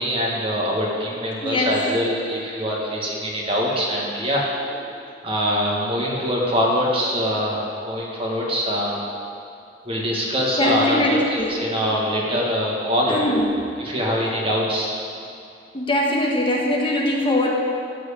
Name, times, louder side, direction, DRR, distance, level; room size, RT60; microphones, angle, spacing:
voice 1, 0.0-4.4 5.2-9.0 9.8-13.2 13.8-14.9, equal, 35° right, -3 dB, 2.0 m, -23 dB
voice 2, 1.4-1.9 3.1-3.8 4.7-4.8 6.1-6.3 10.6-11.7 13.1-13.7 14.3-14.5 15.7-17.5, left 1 dB, 30° left, -2 dB, 1.5 m, -23 dB
13.5 x 5.0 x 8.5 m, 2.6 s
head